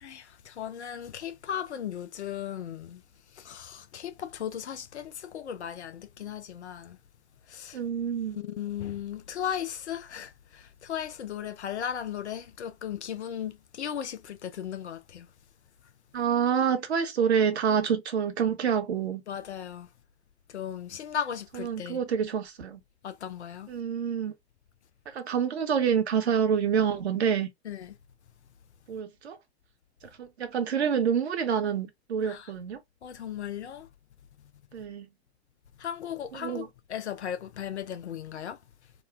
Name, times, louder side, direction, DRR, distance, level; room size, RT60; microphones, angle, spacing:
voice 1, 0.0-3.0 3.3-7.0 7.5-7.8 8.3-15.3 19.3-19.9 20.5-22.0 23.0-23.7 27.7-27.9 32.2-32.5 33.0-33.9 35.8-38.6, left 9 dB, 80° left, 0.5 m, -36 dB
voice 2, 7.7-8.4 16.1-19.2 21.5-22.8 23.7-24.3 25.1-27.5 28.9-29.4 30.2-32.8 34.7-35.1 36.3-36.7, right 7 dB, 75° right, 0.9 m, -27 dB
3.0 x 2.1 x 2.3 m
figure-of-eight pair, 95°, 33 cm